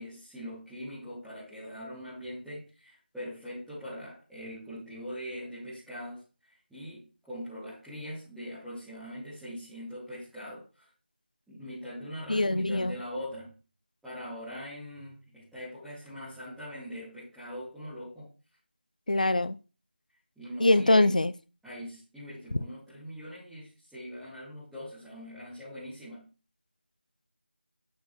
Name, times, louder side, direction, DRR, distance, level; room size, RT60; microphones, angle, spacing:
voice 1, 0.0-10.9 11.5-13.5 14.0-18.3 20.4-21.1 21.6-26.3, equal, ahead, -16 dB, 1.0 m, -42 dB
voice 2, 12.3-12.9 19.1-19.6 20.6-21.3, left 2 dB, 45° left, 17 dB, 0.4 m, -23 dB
8.8 x 5.1 x 2.6 m, 0.34 s
figure-of-eight pair, 170°, 6 cm